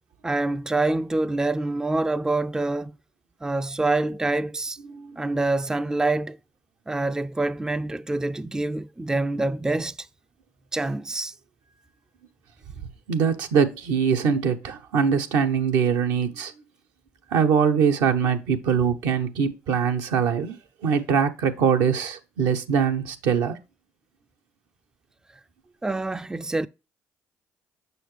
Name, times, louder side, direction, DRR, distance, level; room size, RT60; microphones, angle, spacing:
voice 1, 0.2-2.9 3.4-4.8 5.2-6.4 6.9-10.1 10.7-11.3 25.8-26.7, right 2 dB, 10° right, 0.4 m, -26 dB
voice 2, 4.8-5.4 13.1-16.5 17.3-23.6, right 6 dB, 75° right, 0.8 m, -23 dB
6.9 x 5.8 x 3.2 m
hypercardioid pair, 60°, 6 cm